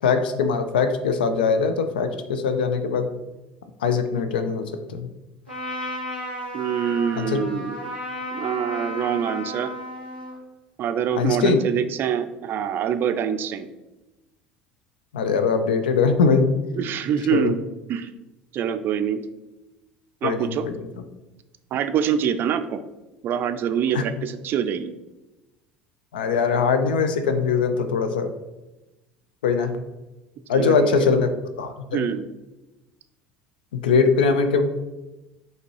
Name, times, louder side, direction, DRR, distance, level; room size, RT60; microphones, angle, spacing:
voice 1, 0.0-3.1 3.8-5.1 7.2-7.4 11.2-11.6 15.1-16.6 17.3-17.5 20.2-20.7 23.9-24.0 26.1-28.3 29.4-29.8 30.5-32.1 33.7-34.6, left 5 dB, 75° left, 9 dB, 0.4 m, -21 dB
Trumpet, 5.5-10.4, equal, 90° left, 1.4 m, -33 dB
voice 2, 6.5-7.7 8.3-9.7 10.8-13.7 16.8-17.6 17.9-18.1 18.5-19.2 20.2-20.7 21.7-22.8 23.2-24.9 30.5-30.9 31.9-32.2, right 8 dB, 45° right, 10 dB, 0.4 m, -25 dB
5.7 x 2.8 x 3.2 m, 1.0 s
figure-of-eight pair, 70°, 5 cm